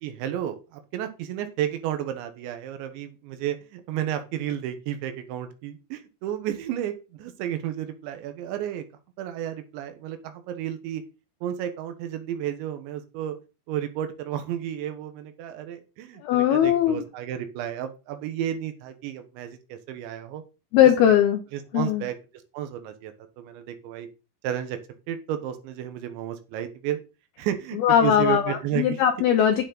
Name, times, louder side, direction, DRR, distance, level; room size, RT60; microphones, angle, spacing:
voice 1, 0.0-8.8 9.2-11.0 11.4-13.4 13.7-20.4 21.0-21.2 21.5-22.1 22.5-24.1 24.4-24.8 25.1-27.0 27.4-29.0, right 11 dB, 75° right, 8 dB, 3.3 m, -32 dB
voice 2, 16.2-17.0 20.7-21.4 21.7-22.0 27.8-29.6, left 10 dB, 90° left, 6 dB, 2.1 m, -20 dB
9.4 x 8.1 x 4.0 m, 0.30 s
omnidirectional pair, 5.6 m